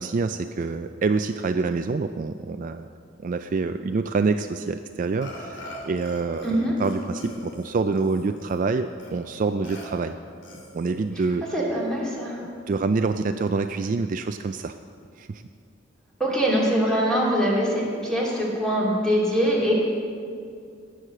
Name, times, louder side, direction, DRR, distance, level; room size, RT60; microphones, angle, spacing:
voice 1, 0.0-2.9 3.2-6.5 6.8-10.2 10.7-11.5 12.7-14.7 15.2-15.4, right 4 dB, 45° right, 8 dB, 0.3 m, -26 dB
Burping eructation, 5.2-6.5 6.8-8.6 9.0-9.1 9.6-9.8 10.4-11.0, left 1 dB, 65° left, 2.9 m, -42 dB
voice 2, 6.4-6.8 11.5-12.4 16.2-19.7, equal, 5° left, -5 dB, 2.8 m, -23 dB
18.0 x 6.5 x 6.6 m, 2.3 s
head